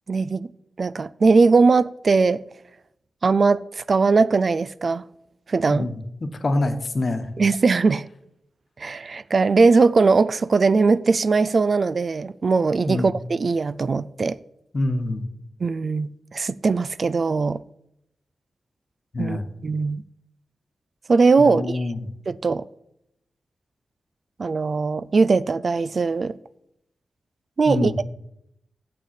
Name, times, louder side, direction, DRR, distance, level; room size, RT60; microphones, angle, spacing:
voice 1, 0.1-0.5 0.8-2.4 3.2-5.0 5.5-5.9 7.4-8.1 8.8-14.4 15.6-17.6 19.2-19.4 19.6-20.0 21.1-21.8 22.3-22.6 24.4-26.4 27.6-28.0, right 4 dB, 55° right, 0.3 m, -20 dB
voice 2, 5.7-7.3 12.9-13.1 14.7-15.2 19.1-19.4 21.4-22.1 27.6-28.0, left 2 dB, 55° left, 1.1 m, -25 dB
6.8 x 6.3 x 7.4 m
cardioid pair, 45°, 0 cm